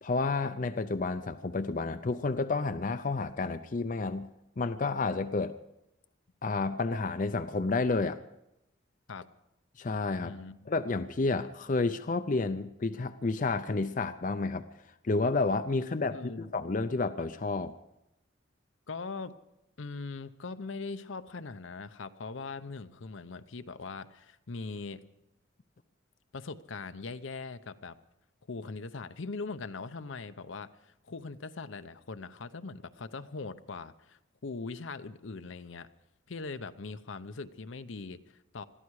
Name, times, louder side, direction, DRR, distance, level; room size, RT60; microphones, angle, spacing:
voice 1, 0.0-4.3 4.6-5.6 6.4-8.2 9.8-10.3 10.7-14.7 15.0-17.7, left 3 dB, 40° left, 10 dB, 0.5 m, -30 dB
voice 2, 10.2-10.6 16.1-16.5 18.9-19.3 19.8-25.0 26.3-28.0 28.5-35.9 36.3-38.6, left 4 dB, 75° left, 11 dB, 0.7 m, -41 dB
21.0 x 14.0 x 4.8 m, 0.88 s
head